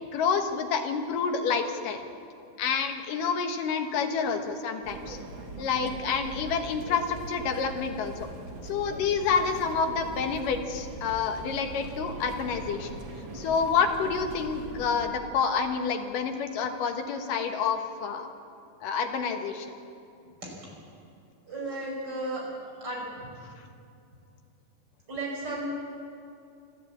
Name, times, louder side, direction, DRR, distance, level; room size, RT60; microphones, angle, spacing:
voice 1, 0.1-2.0 2.6-5.2 5.6-8.3 8.6-12.9 13.3-18.3 18.8-19.7, left 6 dB, 65° left, 5 dB, 2.7 m, -28 dB
sound 1, 4.8-15.1, right 2 dB, 40° right, 2.0 m, -41 dB
voice 2, 21.5-22.4 22.8-23.4 25.1-25.7, right 2 dB, 25° right, -2 dB, 5.8 m, -34 dB
26.5 x 13.0 x 8.6 m, 2.6 s
omnidirectional pair, 4.5 m